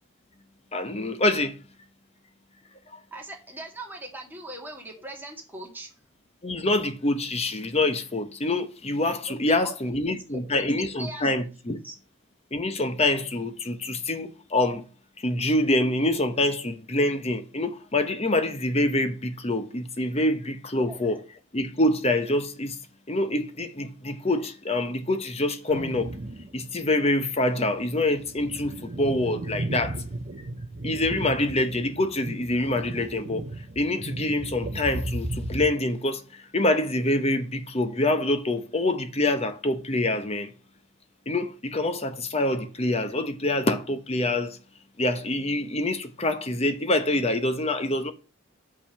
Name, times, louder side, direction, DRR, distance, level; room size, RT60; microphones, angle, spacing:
voice 1, 0.7-1.6 6.4-11.8 12.5-14.8 15.2-21.2 21.5-22.8 23.1-26.1 26.5-30.0 30.8-33.4 33.8-40.5 41.3-44.6 45.0-48.1, left 2 dB, 30° left, 0.9 m, -26 dB
voice 2, 3.1-5.9 9.5-9.8 10.0-10.7 11.0-12.0 20.7-21.0, right 1 dB, 10° right, 2.0 m, -40 dB
sound 1, 25.7-26.6 27.0-27.1 27.8-35.7, right 2 dB, 45° right, 0.6 m, -35 dB
7.0 x 5.7 x 5.6 m
head